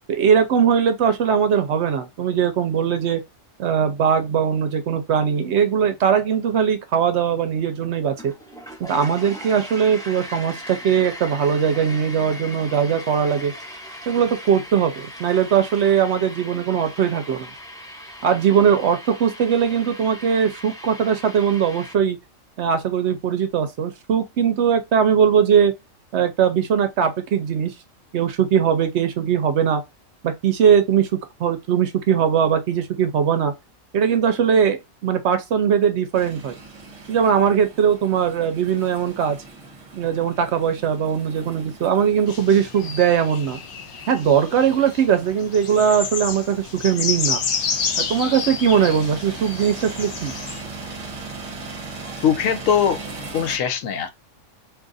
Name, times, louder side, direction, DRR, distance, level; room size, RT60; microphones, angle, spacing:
voice 1, 0.1-3.2 3.6-8.3 8.8-13.5 14.1-17.5 18.2-22.2 22.6-25.7 26.1-27.7 28.1-29.8 30.2-31.1 31.4-33.5 33.9-36.6 37.1-39.4 39.9-43.6 44.1-47.4 48.0-50.4, right 7 dB, 65° right, 0.8 m, -20 dB
sound 1, 8.1-21.9, equal, 5° left, 0.4 m, -39 dB
sound 2, 36.1-53.6, right 3 dB, 30° right, 0.8 m, -39 dB
sound 3, 42.3-50.6, left 6 dB, 55° left, 0.6 m, -30 dB
voice 2, 52.2-53.0 53.3-54.1, left 8 dB, 90° left, 1.0 m, -21 dB
2.6 x 2.4 x 3.8 m
omnidirectional pair, 1.3 m